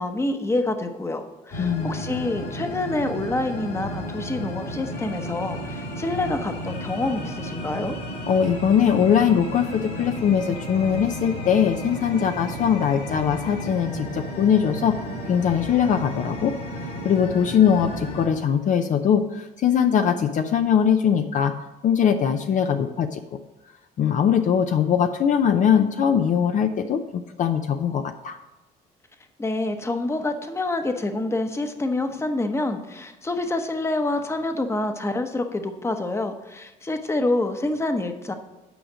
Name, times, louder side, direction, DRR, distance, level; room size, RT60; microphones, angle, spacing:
voice 1, 0.0-8.0 29.4-38.3, left 2 dB, 15° left, 7 dB, 0.9 m, -27 dB
sound 1, 1.5-18.3, equal, 80° left, 3.3 m, -33 dB
voice 2, 1.6-2.0 8.3-15.0 15.3-16.6 17.0-21.5 21.8-23.2 24.0-28.4, left 8 dB, 50° left, 7 dB, 0.6 m, -21 dB
9.1 x 5.0 x 6.2 m, 1.0 s
cardioid pair, 110°, 17 cm